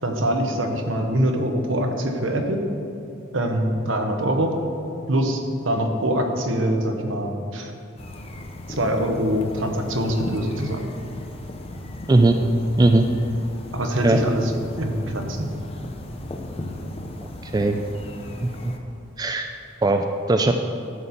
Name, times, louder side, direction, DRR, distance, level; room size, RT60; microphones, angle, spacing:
voice 1, 0.0-2.6 3.3-4.6 5.1-7.7 8.7-10.9 13.7-14.5 14.8-15.5, right 1 dB, 70° right, 4 dB, 1.0 m, -24 dB
sound 1, 8.0-18.8, left 1 dB, 30° left, 0.7 m, -36 dB
voice 2, 17.4-17.8 18.4-18.7 19.2-19.5 19.8-20.5, right 2 dB, 20° right, 5 dB, 0.3 m, -19 dB
11.0 x 4.3 x 6.8 m, 2.7 s
head